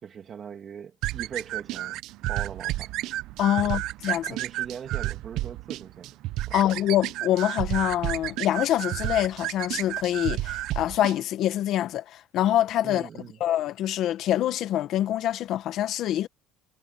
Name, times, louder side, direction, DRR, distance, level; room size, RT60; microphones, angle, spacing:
voice 1, 0.0-2.0 2.3-2.9 3.6-3.7 4.2-6.1 6.5-6.6 12.8-13.4, right 7 dB, 35° right, 2.2 m, -40 dB
sound 1, 1.0-11.2, right 16 dB, 60° right, 0.8 m, -31 dB
voice 2, 3.4-4.4 6.5-13.1 13.4-16.3, left 12 dB, 55° left, 1.6 m, -25 dB
cardioid pair, 130°, 0 cm